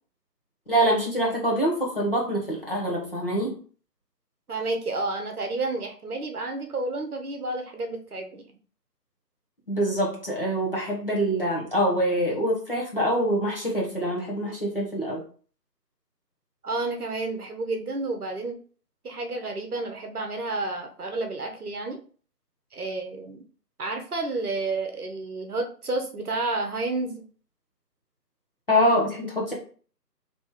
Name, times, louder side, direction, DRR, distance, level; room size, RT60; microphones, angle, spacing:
voice 1, 0.7-3.5 9.7-15.2 28.7-29.5, equal, 35° left, -4 dB, 0.8 m, -25 dB
voice 2, 4.5-8.4 16.6-18.6 19.0-22.0 22.7-23.4 23.8-27.2, right 2 dB, 65° right, 5 dB, 0.9 m, -30 dB
3.0 x 2.9 x 3.5 m, 0.42 s
figure-of-eight pair, 165°, 50 cm